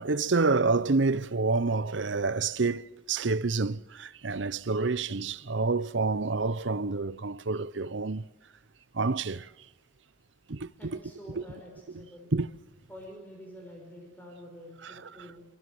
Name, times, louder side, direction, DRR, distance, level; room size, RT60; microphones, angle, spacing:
voice 1, 0.0-8.2 8.9-9.5 10.5-10.9 11.4-11.5 12.3-12.5 14.8-14.9, right 3 dB, 70° right, 0.8 m, -28 dB
voice 2, 10.8-12.3 12.9-15.5, equal, 10° left, 6.0 m, -47 dB
27.0 x 24.5 x 7.8 m
head